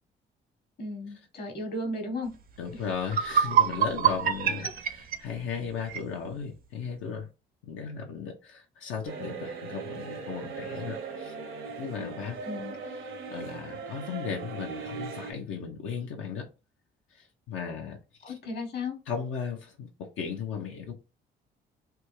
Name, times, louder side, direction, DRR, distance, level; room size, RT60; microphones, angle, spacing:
voice 1, 0.8-2.3 12.4-12.8 18.2-19.0, left 2 dB, 55° left, 1.1 m, -35 dB
voice 2, 2.6-7.3 7.6-11.3 11.8-12.4 12.9-16.5 17.1-18.0 18.3-18.4 19.1-20.9, left 6 dB, 85° left, 0.6 m, -36 dB
sound 1, 2.6-2.7 3.0-6.1, right 8 dB, 45° right, 0.4 m, -26 dB
sound 2, 9.0-15.3, right 4 dB, 80° right, 0.8 m, -39 dB
3.4 x 2.2 x 3.0 m
cardioid pair, 90°, 20 cm